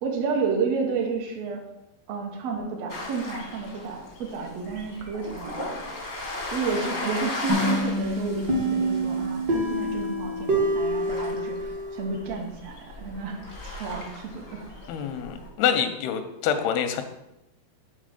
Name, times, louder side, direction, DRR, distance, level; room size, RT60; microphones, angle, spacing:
voice 1, 0.0-1.6 2.1-5.8 6.5-14.6, right 5 dB, 80° right, 0 dB, 1.4 m, -31 dB
sound 1, 2.9-15.5, left 2 dB, 70° left, 0.7 m, -37 dB
sound 2, 7.5-12.2, equal, 65° right, 0.9 m, -27 dB
voice 2, 14.9-17.0, left 8 dB, 90° left, 8 dB, 2.6 m, -26 dB
7.3 x 3.8 x 6.5 m, 0.89 s
omnidirectional pair, 4.5 m